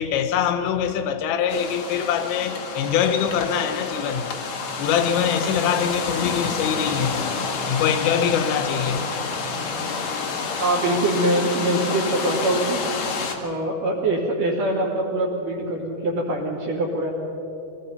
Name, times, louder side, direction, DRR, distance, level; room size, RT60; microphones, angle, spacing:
voice 1, 0.0-4.3 4.8-7.2 7.7-9.0, left 8 dB, 75° left, 8 dB, 3.4 m, -23 dB
sound 1, 1.5-13.3, left 5 dB, 60° left, 1.9 m, -29 dB
voice 2, 10.6-12.8 13.4-17.1, right 1 dB, 50° right, -4 dB, 3.6 m, -23 dB
24.5 x 19.0 x 5.7 m, 2.8 s
omnidirectional pair, 5.5 m